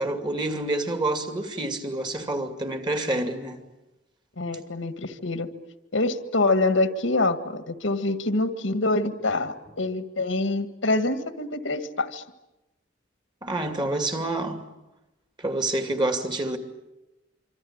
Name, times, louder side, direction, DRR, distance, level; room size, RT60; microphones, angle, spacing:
voice 1, 0.0-3.6 13.4-14.6 15.4-16.6, right 2 dB, 25° right, 2.5 m, -27 dB
voice 2, 4.4-5.5 5.9-12.2, left 2 dB, 80° left, 1.8 m, -25 dB
26.0 x 26.0 x 8.7 m
head